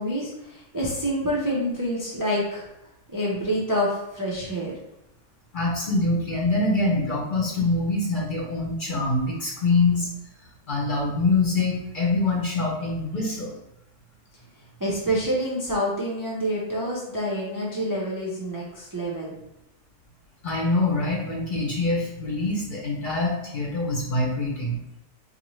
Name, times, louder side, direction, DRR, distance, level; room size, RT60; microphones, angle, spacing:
voice 1, 0.0-2.7 3.1-4.7 14.8-19.3, equal, 30° right, -5 dB, 0.4 m, -27 dB
voice 2, 5.5-10.1 10.7-13.6 20.4-24.8, left 2 dB, 45° left, -3 dB, 0.7 m, -24 dB
4.0 x 2.6 x 3.1 m, 0.89 s
omnidirectional pair, 1.5 m